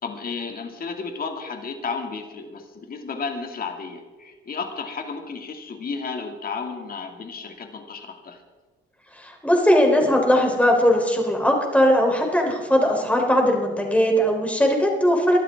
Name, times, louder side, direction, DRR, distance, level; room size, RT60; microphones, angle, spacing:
voice 1, 0.0-8.4, left 5 dB, 50° left, 4 dB, 2.3 m, -33 dB
voice 2, 9.1-15.4, equal, 5° left, 1 dB, 3.6 m, -19 dB
24.0 x 12.5 x 3.6 m, 1.4 s
cardioid pair, 90°, 20 cm